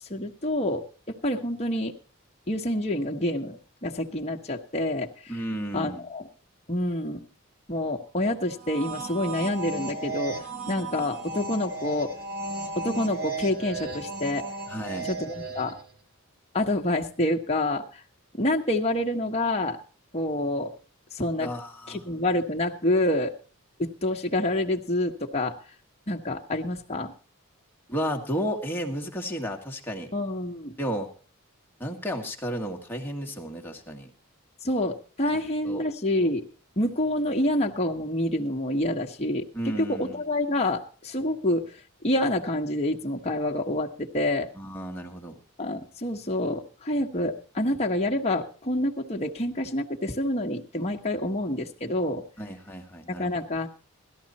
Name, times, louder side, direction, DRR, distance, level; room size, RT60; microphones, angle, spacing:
voice 1, 0.0-1.9 2.5-5.3 5.7-6.3 6.7-7.2 7.7-12.1 12.7-14.4 15.0-15.7 16.5-18.0 18.3-19.8 20.1-20.7 21.1-21.5 21.9-23.3 23.8-25.6 26.1-27.1 30.1-30.7 34.6-36.4 36.8-39.4 39.8-41.7 42.0-44.5 45.6-52.2 53.2-53.7, left 1 dB, 30° left, 1 dB, 1.4 m, -27 dB
voice 2, 5.3-6.1 14.7-15.1 21.4-22.0 27.9-30.1 30.8-31.1 31.8-34.1 35.3-35.8 39.5-40.2 44.6-45.4 52.4-53.3, equal, 10° left, 1 dB, 1.8 m, -33 dB
sound 1, 8.5-15.9, right 3 dB, 45° right, 2.0 m, -35 dB
17.0 x 13.5 x 4.3 m, 0.37 s
head